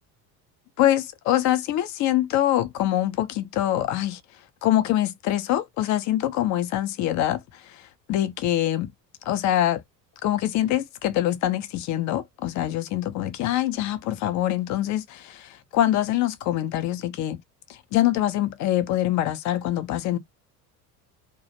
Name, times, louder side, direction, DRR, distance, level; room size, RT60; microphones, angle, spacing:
voice 1, 0.8-4.2 4.6-8.9 9.2-9.8 10.2-17.4 17.7-20.2, left 13 dB, 40° left, 0.5 m, -24 dB
2.4 x 2.1 x 2.6 m
figure-of-eight pair, 60°, 48 cm